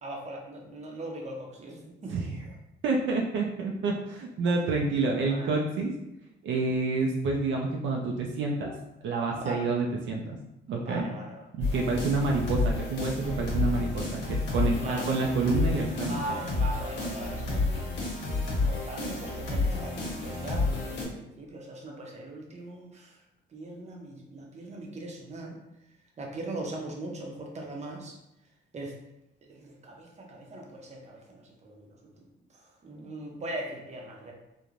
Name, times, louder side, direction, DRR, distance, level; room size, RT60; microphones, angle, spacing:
voice 1, 0.0-2.1 5.2-5.6 9.3-9.7 10.7-11.4 14.7-15.1 16.0-17.8 18.6-23.2 23.5-25.6 26.2-28.2 28.7-28.9 29.5-32.1 32.5-34.3, right 2 dB, 35° right, 0 dB, 0.7 m, -40 dB
voice 2, 2.1-2.4 2.8-5.9 6.4-8.7 9.0-10.2 10.7-11.1 11.5-16.2, right 3 dB, 70° right, 0 dB, 0.4 m, -28 dB
sound 1, 11.6-21.1, left 3 dB, 65° left, 0.9 m, -30 dB
3.1 x 2.1 x 2.4 m, 0.88 s
cardioid pair, 90°, 20 cm